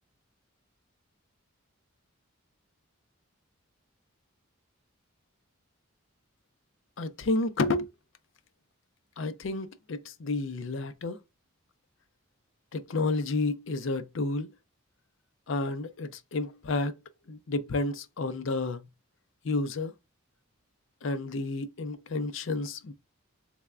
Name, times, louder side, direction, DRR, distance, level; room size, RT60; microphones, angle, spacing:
voice 1, 7.0-7.9 9.2-11.2 12.7-14.5 15.5-17.0 17.3-18.8 19.4-19.9 21.0-22.9, left 2 dB, 60° left, 0.5 m, -30 dB
3.4 x 3.3 x 2.3 m
head